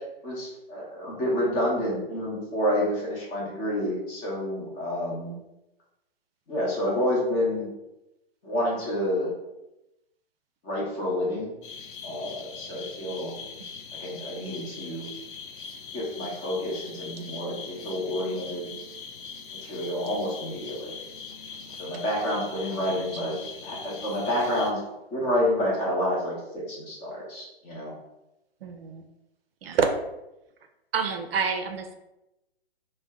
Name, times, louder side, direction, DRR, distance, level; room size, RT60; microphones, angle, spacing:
voice 1, 0.2-5.3 6.5-7.7 8.4-9.3 10.6-11.5 12.0-13.3 14.0-15.1 15.9-18.7 19.6-20.9 21.8-23.4 23.6-24.8 25.1-27.9, left 1 dB, 20° left, -3 dB, 0.8 m, -29 dB
sound 1, 11.6-24.7, left 5 dB, 55° left, 0.5 m, -41 dB
voice 2, 22.5-23.4 28.6-29.0 29.6-29.9 30.9-31.9, right 5 dB, 70° right, 5 dB, 0.5 m, -29 dB
2.6 x 2.1 x 3.4 m, 0.93 s
hypercardioid pair, 145°, 31 cm